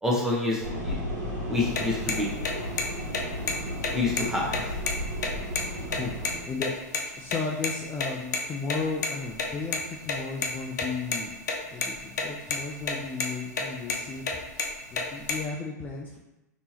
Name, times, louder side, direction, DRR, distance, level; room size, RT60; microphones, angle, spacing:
voice 1, 0.0-1.0 1.5-2.3 3.9-4.7, left 2 dB, 5° right, -4 dB, 1.0 m, -27 dB
sound 1, 0.6-6.4, equal, 85° right, 1.3 m, -34 dB
sound 2, 1.6-6.7 6.9-7.0 7.3-7.4 7.6-7.7 8.0-8.1 8.3-8.4 8.7-9.8 10.0-10.5 10.8-11.5 11.8-12.2 12.5-12.9 13.2-13.3 13.6-14.0 14.3-15.4, left 4 dB, 70° left, 0.6 m, -29 dB
voice 2, 5.9-6.8 7.2-11.4 11.7-14.3 14.9-16.2, left 4 dB, 20° left, -1 dB, 0.3 m, -34 dB
3.5 x 2.9 x 2.8 m, 0.99 s
hypercardioid pair, 105°, 10 cm